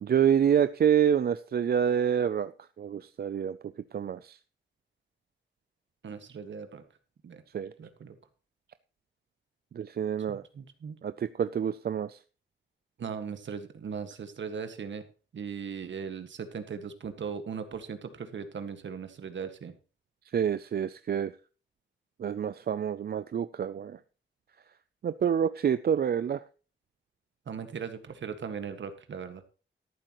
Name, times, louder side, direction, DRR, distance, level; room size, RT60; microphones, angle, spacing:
voice 1, 0.0-2.5 2.8-3.6 3.9-4.4 7.5-7.7 9.7-10.4 11.0-12.2 20.3-21.3 22.2-24.0 25.0-26.4, right 8 dB, 50° right, 13 dB, 0.5 m, -27 dB
voice 2, 6.0-6.8 7.2-7.4 7.8-8.2 10.3-11.0 13.0-15.0 15.3-19.7 27.5-29.4, right 6 dB, 65° right, 8 dB, 1.7 m, -38 dB
13.5 x 11.5 x 3.0 m, 0.35 s
wide cardioid pair, 180°, 20 cm